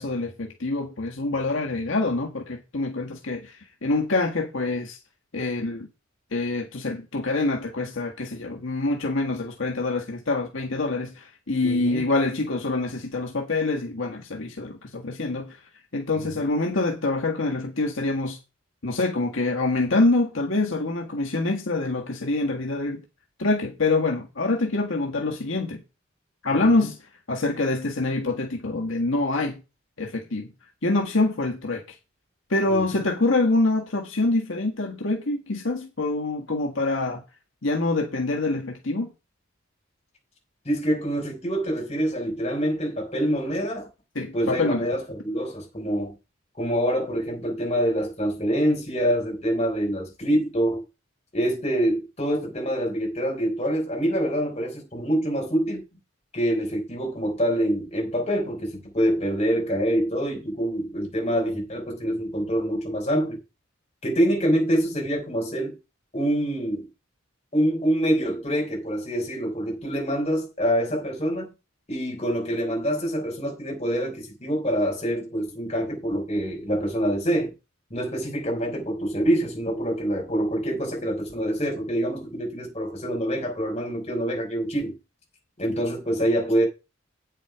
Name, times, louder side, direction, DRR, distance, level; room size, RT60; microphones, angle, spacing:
voice 1, 0.0-5.0 5.3-5.9 6.3-15.6 15.9-18.4 18.8-23.0 23.4-25.8 26.4-27.0 27.3-29.6 30.0-30.5 30.8-32.0 32.5-37.2 37.6-39.1 44.2-44.9, left 2 dB, 75° left, 1.6 m, -25 dB
voice 2, 11.6-12.0 16.2-16.3 26.5-26.8 32.7-33.0 40.7-43.9 44.3-46.2 46.6-50.8 51.3-55.8 56.3-63.4 64.0-65.8 66.1-66.9 67.5-71.5 71.9-77.5 77.9-84.9 85.6-86.6, equal, 30° left, 5.4 m, -25 dB
9.1 x 7.5 x 4.9 m
head